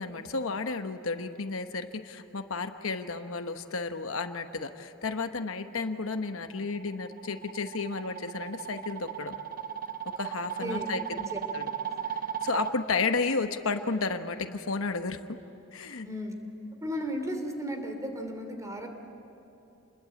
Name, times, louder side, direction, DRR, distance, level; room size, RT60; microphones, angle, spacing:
voice 1, 0.0-9.3 10.2-11.0 11.5-11.7 12.4-15.2 15.7-16.1, left 4 dB, 65° left, 8 dB, 1.1 m, -32 dB
sound 1, 6.6-12.7, right 9 dB, 40° right, 0.9 m, -36 dB
voice 2, 10.6-11.4 16.0-16.3 16.8-18.9, equal, 15° right, 5 dB, 2.9 m, -35 dB
29.0 x 21.5 x 8.6 m, 2.9 s
head